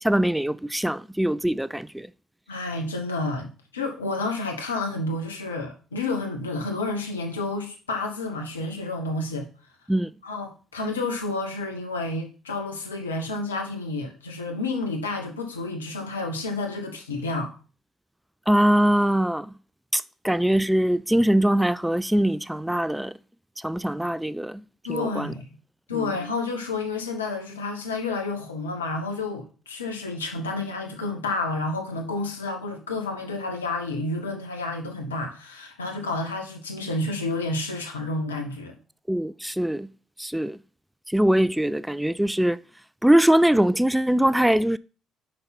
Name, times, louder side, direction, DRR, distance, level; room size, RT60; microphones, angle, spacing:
voice 1, 0.0-2.1 9.9-10.1 18.5-19.5 19.9-23.1 23.6-24.6 24.9-25.3 25.9-26.1 39.1-39.9 40.2-40.6 41.1-42.6 43.0-44.8, right 1 dB, 5° right, 0.4 m, -22 dB
voice 2, 2.5-9.5 10.2-17.5 24.8-25.5 25.9-38.7, left 2 dB, 90° left, 1.1 m, -30 dB
6.6 x 5.6 x 4.1 m
hypercardioid pair, 55°, 0 cm